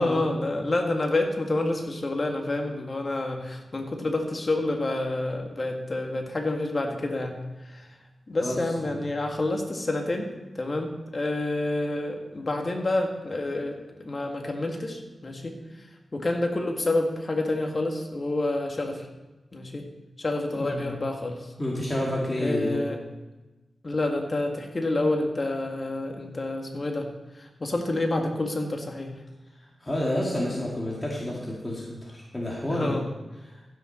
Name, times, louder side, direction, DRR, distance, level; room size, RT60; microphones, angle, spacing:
voice 1, 0.0-7.4 7.7-7.9 8.3-10.3 10.6-15.6 16.1-19.1 19.5-19.9 20.2-21.5 22.4-23.0 23.8-29.2 32.7-33.1, left 2 dB, 45° left, 2 dB, 1.8 m, -28 dB
voice 2, 20.5-20.9 21.6-22.8 29.8-33.0, left 1 dB, 25° left, -4 dB, 2.5 m, -29 dB
15.0 x 6.4 x 4.3 m, 1.1 s
cardioid pair, 50°, 0 cm